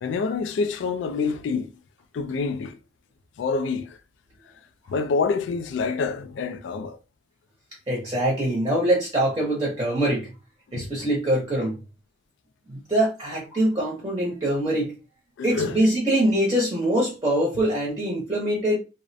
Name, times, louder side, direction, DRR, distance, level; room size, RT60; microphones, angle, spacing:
voice 1, 0.0-1.7 2.1-2.8 3.4-4.0 4.9-7.0 10.7-10.9 15.4-15.8, left 4 dB, 80° left, 0.3 m, -27 dB
voice 2, 7.9-10.3 10.7-11.8 12.7-14.9 15.4-18.8, right 1 dB, 20° right, 0.6 m, -23 dB
2.3 x 2.0 x 2.6 m
head